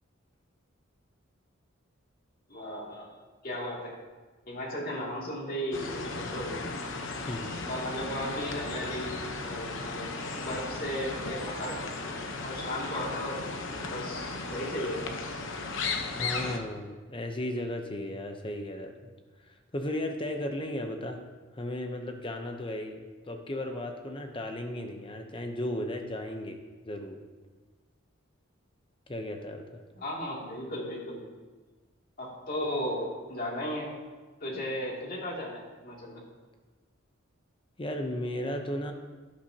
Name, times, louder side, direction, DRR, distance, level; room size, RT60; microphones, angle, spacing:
voice 1, 2.5-3.1 3.4-3.9 4.5-6.6 7.7-10.1 10.4-11.8 12.4-13.5 13.9-15.1 30.0-31.2 32.2-33.9 34.4-36.3, equal, 45° left, -3 dB, 2.5 m, -35 dB
sound 1, 5.7-16.6, left 3 dB, 65° left, 0.9 m, -36 dB
voice 2, 16.2-19.1 19.4-21.2 21.5-27.2 29.1-29.8 37.8-38.9, left 1 dB, 25° left, 5 dB, 0.7 m, -35 dB
12.0 x 11.5 x 2.8 m, 1.3 s
head